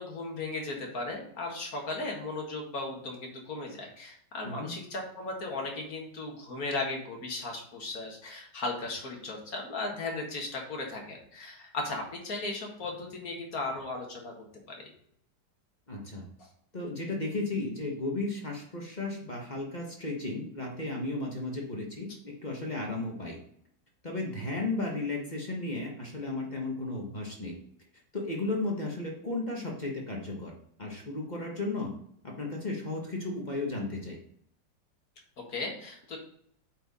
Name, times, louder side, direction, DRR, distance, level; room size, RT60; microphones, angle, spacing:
voice 1, 0.0-14.3 14.7-14.9 35.4-36.2, left 2 dB, 60° left, 1 dB, 2.1 m, -36 dB
voice 2, 4.4-4.7 15.9-16.2 16.7-23.4 24.0-27.6 28.1-30.5 30.8-31.9 32.2-34.2, left 2 dB, 30° left, -1 dB, 1.3 m, -34 dB
8.7 x 4.5 x 4.1 m, 0.66 s
omnidirectional pair, 1.8 m